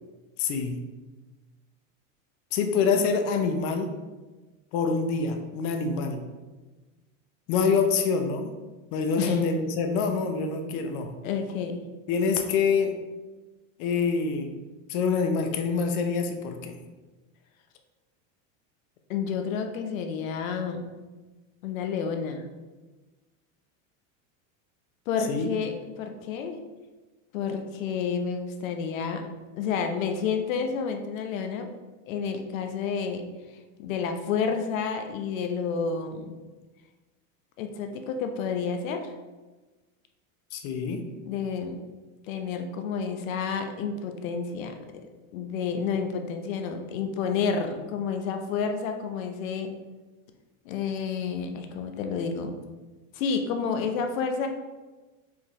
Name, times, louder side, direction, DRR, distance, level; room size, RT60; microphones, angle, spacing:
voice 1, 0.4-0.8 2.5-3.9 4.7-6.2 7.5-8.6 8.9-11.1 12.1-12.9 13.8-14.6 14.9-16.8 25.3-25.5 40.5-41.0, left 5 dB, 45° left, 5 dB, 0.6 m, -26 dB
voice 2, 11.2-11.8 19.1-20.9 21.6-22.5 25.1-26.6 27.3-29.3 29.5-31.7 32.1-33.2 33.8-36.4 37.6-39.0 41.2-41.8 42.3-45.1 45.3-49.7 50.7-52.5 53.1-54.5, left 6 dB, 80° left, 5 dB, 0.8 m, -30 dB
4.7 x 3.5 x 3.1 m, 1.2 s
supercardioid pair, 145°, 40 cm